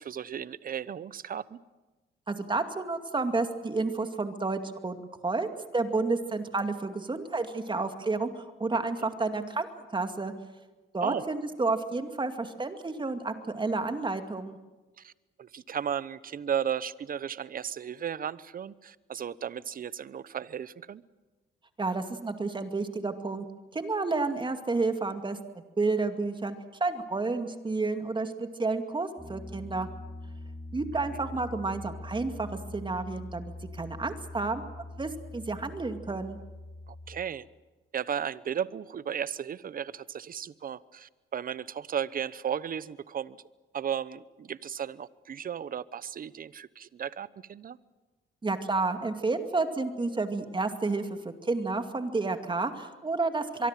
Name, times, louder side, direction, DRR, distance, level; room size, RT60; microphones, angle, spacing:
voice 1, 0.0-1.6 9.0-9.1 11.0-11.2 15.0-15.1 15.4-21.0 31.1-31.4 36.9-37.4 37.9-43.4 43.7-47.8, right 8 dB, 45° right, 18 dB, 0.9 m, -35 dB
voice 2, 2.3-5.0 5.2-5.5 5.7-9.7 9.9-10.3 10.9-14.6 21.8-23.5 23.7-25.4 25.8-26.6 26.8-29.9 30.7-32.5 32.7-36.4 48.4-53.7, right 3 dB, 25° right, 7 dB, 2.3 m, -30 dB
Piano, 29.2-37.2, left 2 dB, 15° left, 3.5 m, -43 dB
24.0 x 23.5 x 7.5 m, 1.2 s
cardioid pair, 90°, 20 cm